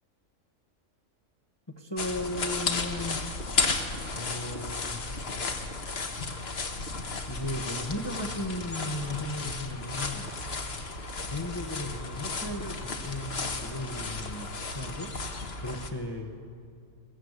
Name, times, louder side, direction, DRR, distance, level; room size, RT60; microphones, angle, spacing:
voice 1, 1.7-3.2 4.1-5.0 7.3-10.3 11.3-16.3, left 1 dB, 20° left, 3 dB, 1.2 m, -36 dB
sound 1, 2.0-15.9, left 3 dB, 50° left, 1.6 m, -34 dB
20.5 x 16.0 x 8.1 m, 2.3 s
omnidirectional pair, 1.4 m